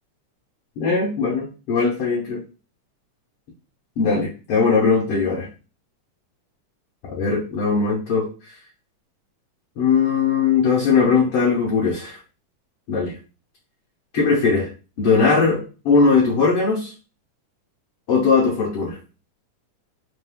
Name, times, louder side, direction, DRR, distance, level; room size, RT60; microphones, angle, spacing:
voice 1, 0.8-2.4 4.0-5.5 7.1-8.3 9.8-12.2 12.9-13.1 14.1-14.7 15.0-16.9 18.1-19.0, left 5 dB, 65° left, -3 dB, 1.5 m, -19 dB
5.3 x 2.6 x 3.5 m, 0.34 s
omnidirectional pair, 3.7 m